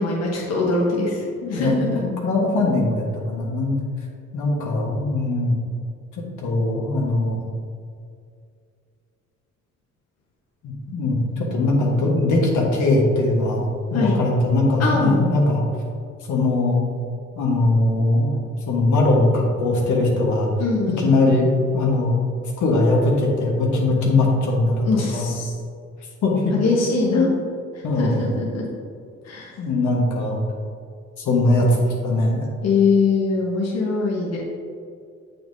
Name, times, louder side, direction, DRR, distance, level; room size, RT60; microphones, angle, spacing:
voice 1, 0.0-1.2 1.5-2.0 13.9-14.2 14.8-15.3 20.6-21.2 24.8-25.5 26.5-27.3 28.0-28.6 29.2-29.5 32.6-34.4, left 3 dB, 55° left, -3 dB, 1.2 m, -22 dB
voice 2, 1.4-3.8 4.3-5.5 6.4-7.4 10.6-15.6 16.3-16.8 17.3-18.4 18.7-20.5 21.0-22.2 22.6-25.3 26.2-27.3 27.8-28.2 29.6-30.4 31.2-32.4, left 2 dB, 75° left, -2 dB, 1.4 m, -20 dB
7.2 x 5.8 x 2.7 m, 2.3 s
cardioid pair, 90°, 30 cm